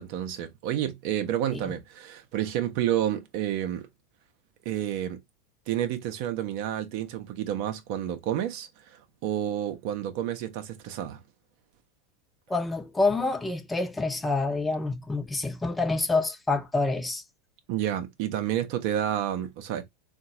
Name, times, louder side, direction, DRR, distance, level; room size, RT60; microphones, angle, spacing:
voice 1, 0.0-3.9 4.6-5.2 5.7-11.2 17.7-19.8, right 11 dB, 55° right, 0.6 m, -30 dB
voice 2, 12.5-17.2, left 3 dB, 10° left, 0.6 m, -27 dB
3.7 x 2.2 x 2.7 m
figure-of-eight pair, 80°, 0 cm